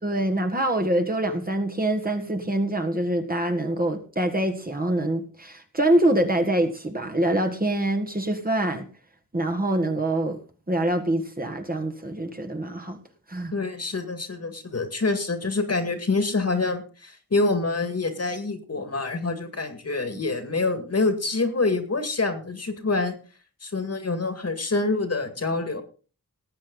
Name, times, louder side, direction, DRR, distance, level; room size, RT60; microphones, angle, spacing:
voice 1, 0.0-8.9 9.3-10.4 10.7-13.0 13.3-13.5, right 1 dB, 25° right, 3 dB, 1.8 m, -25 dB
voice 2, 13.5-23.1 23.6-25.8, left 3 dB, 45° left, 8 dB, 2.1 m, -26 dB
18.5 x 8.6 x 4.0 m, 0.37 s
wide cardioid pair, 105°, 34 cm